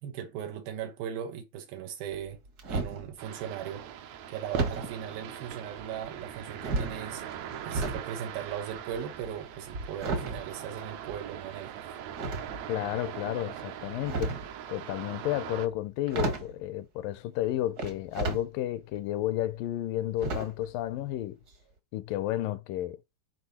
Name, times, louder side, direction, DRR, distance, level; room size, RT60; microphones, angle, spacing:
voice 1, 0.0-2.4 2.7-3.9 4.3-7.2 7.6-11.7, right 9 dB, 85° right, 3.0 m, -38 dB
sound 1, 2.1-3.1 4.5-4.9 5.8-6.2 6.6-8.1 8.4-11.4 12.1-12.9 13.8-14.6 15.7-15.8 16.1-16.6 17.8-18.4 18.9-19.0 20.2-20.7 21.0-21.2 21.5-21.6, right 3 dB, 45° right, 1.2 m, -33 dB
sound 2, 3.2-15.7, right 10 dB, 70° right, 1.9 m, -41 dB
voice 2, 12.7-14.4 14.7-21.4 21.9-23.0, left 14 dB, 80° left, 2.2 m, -32 dB
10.5 x 5.2 x 4.2 m
omnidirectional pair, 4.2 m